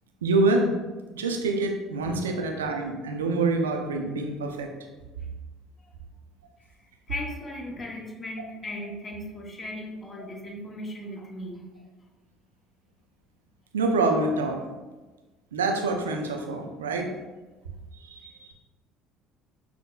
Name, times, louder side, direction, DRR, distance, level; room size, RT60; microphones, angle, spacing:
voice 1, 0.2-0.7 1.1-4.7 13.7-14.6 15.5-17.1 17.9-18.5, right 3 dB, 90° right, 3 dB, 0.4 m, -26 dB
voice 2, 7.1-11.7, left 1 dB, 35° left, -1 dB, 0.9 m, -37 dB
5.8 x 2.1 x 2.3 m, 1.2 s
hypercardioid pair, 65°, 0 cm